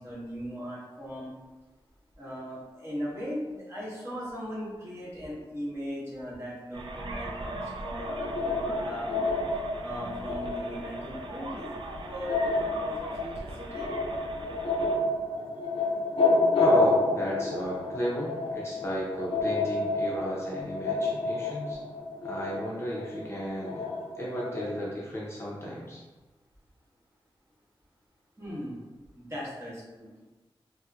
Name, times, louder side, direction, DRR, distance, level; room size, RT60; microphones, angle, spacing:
voice 1, 0.0-1.3 2.2-9.1 9.8-13.9 28.4-28.8 29.1-30.1, equal, 30° right, -8 dB, 1.2 m, -38 dB
sound 1, 6.7-15.0, right 2 dB, 60° right, 0.4 m, -39 dB
sound 2, 8.0-24.7, left 2 dB, 80° left, 0.4 m, -29 dB
voice 2, 16.5-21.8 22.2-23.8 24.2-26.0, equal, 30° left, -5 dB, 0.6 m, -33 dB
4.1 x 2.1 x 2.4 m, 1.2 s
wide cardioid pair, 100°, 9 cm